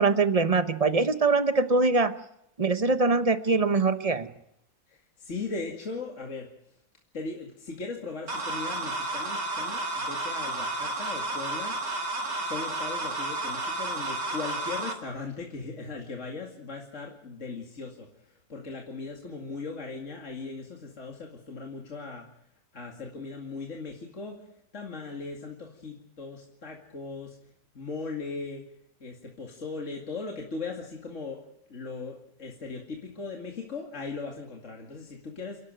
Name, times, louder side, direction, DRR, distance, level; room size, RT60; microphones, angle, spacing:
voice 1, 0.0-2.1 2.6-4.3, right 3 dB, 25° right, 11 dB, 0.9 m, -23 dB
voice 2, 5.2-6.5 7.1-11.7 12.4-18.1 18.5-22.3 22.7-24.4 24.7-27.4 27.7-28.6 29.0-31.4 31.7-35.6, left 4 dB, 45° left, 0 dB, 2.6 m, -38 dB
sound 1, 8.3-14.9, right 2 dB, 85° right, 3.0 m, -32 dB
29.0 x 12.0 x 9.1 m, 0.76 s
omnidirectional pair, 1.8 m